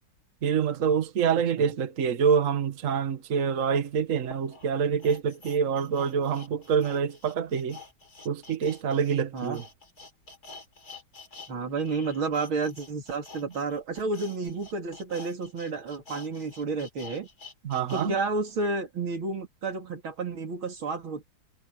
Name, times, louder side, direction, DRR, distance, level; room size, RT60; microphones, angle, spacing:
voice 1, 0.4-7.8 8.2-9.6 17.6-18.1, right 6 dB, 45° right, 1.6 m, -26 dB
sound 1, 3.4-3.5 4.2-11.5 11.8-18.1 18.5-18.6, left 4 dB, 50° left, 6.6 m, -48 dB
voice 2, 11.5-17.3 17.9-21.3, right 3 dB, 90° right, 3.8 m, -31 dB
omnidirectional pair, 2.2 m